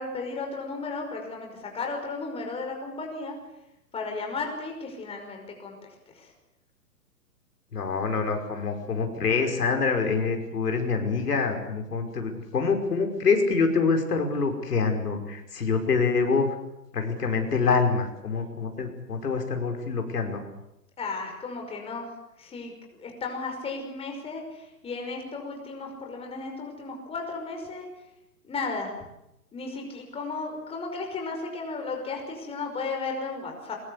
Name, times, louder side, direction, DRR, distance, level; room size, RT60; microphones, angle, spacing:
voice 1, 0.0-3.4 3.9-5.8 6.1-6.3 21.0-22.1 22.4-27.9 28.4-28.9 29.5-33.8, left 3 dB, 10° left, 2 dB, 5.5 m, -34 dB
voice 2, 7.7-16.5 16.9-20.4, left 4 dB, 75° left, 4 dB, 5.5 m, -26 dB
24.0 x 22.0 x 8.5 m, 0.87 s
hypercardioid pair, 135°, 47 cm